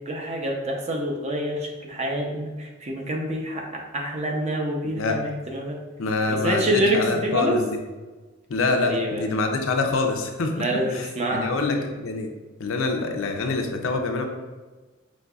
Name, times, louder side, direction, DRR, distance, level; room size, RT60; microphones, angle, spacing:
voice 1, 0.1-5.8 6.3-7.6 8.8-9.3 10.6-11.6, equal, 35° right, 1 dB, 0.6 m, -27 dB
voice 2, 4.9-5.2 6.0-7.8 8.5-12.3 12.6-14.3, left 3 dB, 80° left, 3 dB, 0.6 m, -26 dB
5.2 x 3.2 x 2.3 m, 1.3 s
head